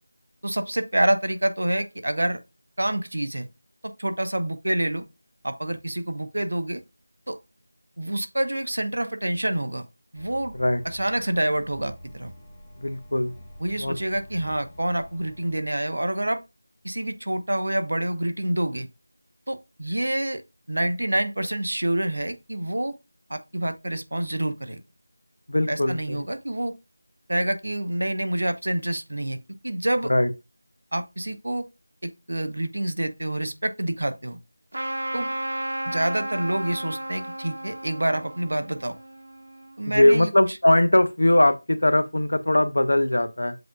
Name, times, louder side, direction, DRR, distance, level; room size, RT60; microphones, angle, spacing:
voice 1, 0.4-2.4 2.8-3.5 3.8-5.0 5.4-6.8 7.3-7.4 8.0-9.9 10.1-10.5 10.8-12.3 13.6-16.4 16.8-18.9 19.5-20.4 20.7-23.0 23.3-24.8 25.7-26.7 27.3-29.4 29.6-30.1 30.9-31.7 32.0-34.4 35.1-35.3 35.9-39.0 39.8-40.3, right 1 dB, 90° right, 0.7 m, -27 dB
sound 1, 10.1-15.6, equal, 10° left, 0.6 m, -46 dB
voice 2, 12.8-13.3 13.8-14.0 25.5-26.2 30.1-30.3 39.9-43.6, left 1 dB, 85° left, 0.5 m, -20 dB
Trumpet, 34.7-39.8, right 1 dB, 60° right, 1.0 m, -33 dB
7.7 x 2.6 x 2.3 m
figure-of-eight pair, 180°, 0 cm